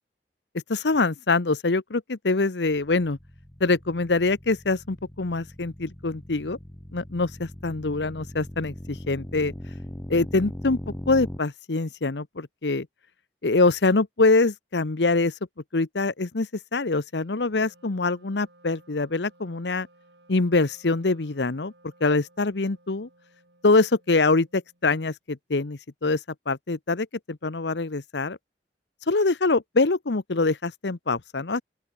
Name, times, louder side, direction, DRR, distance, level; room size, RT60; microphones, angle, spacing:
voice 1, 0.7-3.2 3.6-6.6 6.9-9.5 10.1-10.8 11.1-12.9 13.4-15.3 15.7-19.9 20.3-21.7 22.0-23.1 23.6-28.4 29.1-31.6, left 3 dB, 85° left, 1.0 m, -24 dB
sound 1, 2.8-11.4, equal, 10° left, 1.3 m, -40 dB
Wind instrument woodwind instrument, 17.1-24.9, right 2 dB, 80° right, 6.0 m, -59 dB
open air
head